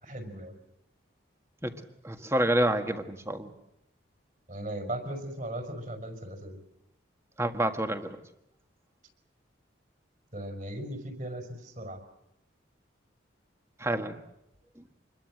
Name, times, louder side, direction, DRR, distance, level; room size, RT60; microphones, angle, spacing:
voice 1, 0.0-0.5 4.5-6.6 10.3-12.0, right 1 dB, 40° right, 6 dB, 5.6 m, -37 dB
voice 2, 2.0-3.5 7.4-8.2 13.8-14.2 14.8-14.9, right 1 dB, 15° right, 7 dB, 1.7 m, -28 dB
27.5 x 22.0 x 7.8 m, 0.84 s
head